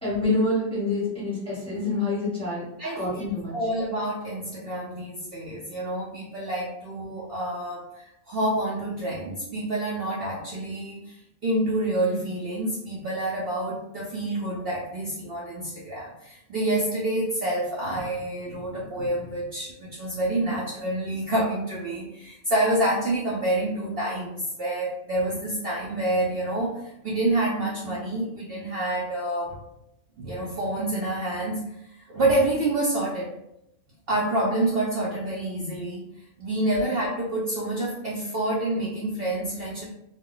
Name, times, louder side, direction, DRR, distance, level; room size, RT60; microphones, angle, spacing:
voice 1, 0.0-2.7 2.9-3.5 36.7-36.8, left 2 dB, 5° left, -7 dB, 0.9 m, -27 dB
voice 2, 2.8-3.2 3.5-29.6 30.2-31.7 32.1-33.3 34.1-39.9, right 1 dB, 60° right, -6 dB, 0.7 m, -28 dB
2.2 x 2.1 x 3.7 m, 0.84 s
omnidirectional pair, 1.4 m